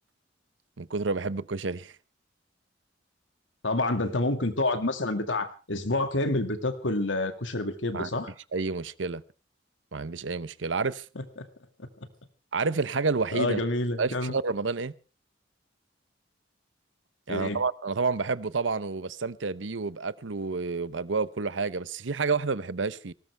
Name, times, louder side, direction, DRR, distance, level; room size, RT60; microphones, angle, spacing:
voice 1, 0.8-1.9 7.9-8.1 8.5-9.2 9.9-11.0 12.5-13.6 14.0-14.9 17.3-23.1, right 4 dB, 90° right, 0.9 m, -29 dB
voice 2, 3.6-8.3 13.3-14.3 17.3-17.6, left 2 dB, 90° left, 2.3 m, -28 dB
19.5 x 18.5 x 3.4 m
head